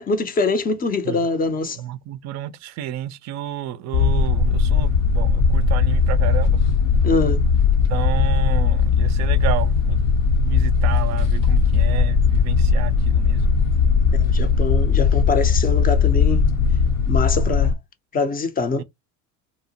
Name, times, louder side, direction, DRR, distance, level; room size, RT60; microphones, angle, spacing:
voice 1, 0.0-1.8 7.0-7.4 14.2-16.4 17.1-17.7 18.1-18.8, left 3 dB, 20° left, 0.5 m, -23 dB
voice 2, 1.8-6.6 7.9-10.2 10.4-13.5 18.8-18.9, right 12 dB, 40° right, 0.4 m, -31 dB
sound 1, 3.9-17.7, left 5 dB, 60° left, 0.7 m, -18 dB
2.9 x 2.0 x 2.7 m
hypercardioid pair, 80°, 46 cm